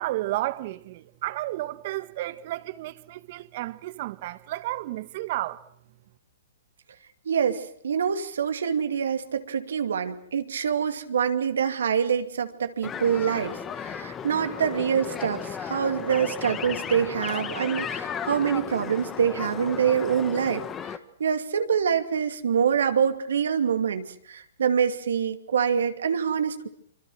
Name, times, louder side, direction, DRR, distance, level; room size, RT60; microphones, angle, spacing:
voice 1, 0.0-5.6, right 16 dB, 50° right, 1.5 m, -32 dB
voice 2, 7.3-20.6 21.2-26.7, right 7 dB, 70° right, 2.4 m, -25 dB
sound 1, 12.8-21.0, left 7 dB, 20° left, 1.6 m, -35 dB
26.0 x 25.5 x 6.3 m
hypercardioid pair, 125°, 0 cm